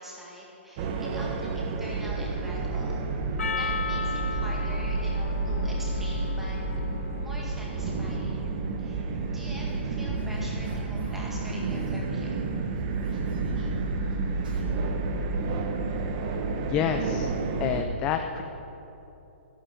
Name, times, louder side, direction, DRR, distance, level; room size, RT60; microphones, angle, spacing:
voice 1, 0.0-3.0 3.6-6.6 7.2-8.5 8.8-9.0 9.3-12.4, equal, 5° right, -4 dB, 2.0 m, -44 dB
sound 1, 0.8-17.8, right 3 dB, 25° right, 1.0 m, -30 dB
Percussion, 3.4-8.0, left 6 dB, 80° left, 0.6 m, -36 dB
sound 2, 9.6-14.6, equal, 45° right, 4.5 m, -41 dB
voice 2, 16.6-17.3 17.6-18.4, left 8 dB, 10° left, 6 dB, 0.4 m, -28 dB
12.5 x 12.5 x 8.3 m, 3.0 s
hypercardioid pair, 175°, 7 cm